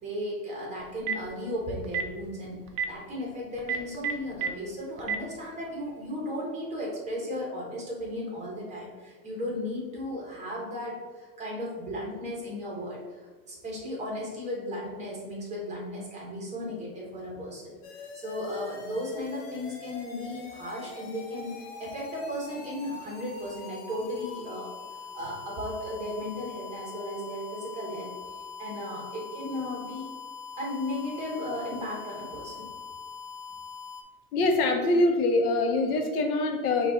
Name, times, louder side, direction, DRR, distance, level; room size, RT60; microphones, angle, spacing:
voice 1, 0.0-11.0 11.4-13.2 13.5-17.7 18.1-28.1 28.6-30.1 30.6-32.7, left 1 dB, 15° right, -3 dB, 1.1 m, -35 dB
Telephone, 0.8-1.3 1.8-2.1 2.7-2.8 3.6-4.5 5.0-5.2, right 7 dB, 35° right, 0.4 m, -28 dB
sound 1, 17.8-34.0, left 5 dB, 50° left, 0.8 m, -43 dB
voice 2, 34.3-36.9, left 2 dB, 85° left, 4 dB, 0.9 m, -24 dB
5.4 x 2.5 x 3.8 m, 1.4 s
supercardioid pair, 150°, 43 cm